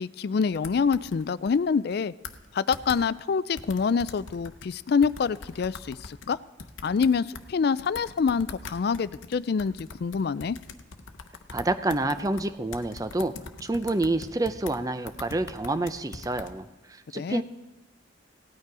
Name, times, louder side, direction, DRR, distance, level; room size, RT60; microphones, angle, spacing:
voice 1, 0.0-2.1 2.5-6.4 6.8-9.7 10.0-10.6 17.1-17.4, left 5 dB, 55° left, 17 dB, 0.3 m, -26 dB
sound 1, 0.5-1.6 1.9-2.0 2.2-2.5 2.7-3.0 3.6-4.7 5.0-7.5 7.8-14.8 15.1-16.5, left 4 dB, 85° left, 0.8 m, -42 dB
voice 2, 11.5-13.3 13.6-17.4, right 2 dB, 20° right, 10 dB, 0.5 m, -28 dB
17.0 x 9.3 x 4.8 m, 1.0 s
head